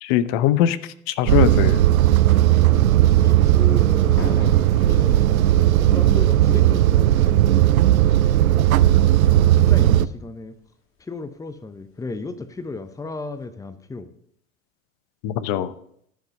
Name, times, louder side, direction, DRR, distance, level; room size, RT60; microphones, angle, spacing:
voice 1, 0.0-0.8 1.1-1.8 15.2-15.7, left 11 dB, 55° left, 14 dB, 0.9 m, -21 dB
sound 1, 1.3-10.1, right 13 dB, 85° right, 0.6 m, -16 dB
sound 2, 1.5-13.5, left 4 dB, 30° left, 2.5 m, -42 dB
voice 2, 2.4-2.9 3.2-8.1 9.1-10.6 11.0-14.1, left 3 dB, 10° left, 12 dB, 0.8 m, -35 dB
14.0 x 5.5 x 6.4 m, 0.70 s
hypercardioid pair, 90°, 41 cm